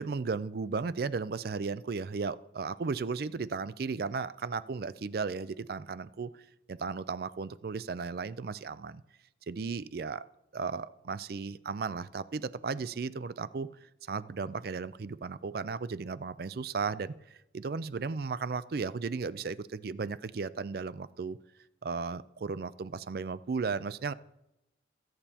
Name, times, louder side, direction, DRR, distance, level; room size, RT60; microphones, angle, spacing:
voice 1, 0.0-6.4 6.7-9.0 9.5-10.2 10.5-13.7 14.0-21.4 21.8-24.1, right 4 dB, 55° right, 16 dB, 0.4 m, -35 dB
24.0 x 9.0 x 2.8 m, 0.90 s
head